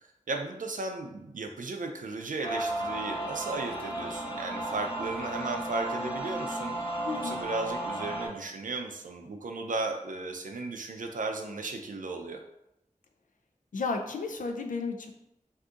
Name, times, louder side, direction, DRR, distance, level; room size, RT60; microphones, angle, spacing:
voice 1, 0.3-6.7 7.2-12.4, right 3 dB, 80° right, 4 dB, 0.4 m, -35 dB
sound 1, 2.4-8.3, right 1 dB, 35° left, 0.9 m, -34 dB
voice 2, 7.1-7.4 13.7-15.1, left 4 dB, 85° left, 4 dB, 0.4 m, -33 dB
2.7 x 2.4 x 3.6 m, 0.84 s
wide cardioid pair, 65°, 13 cm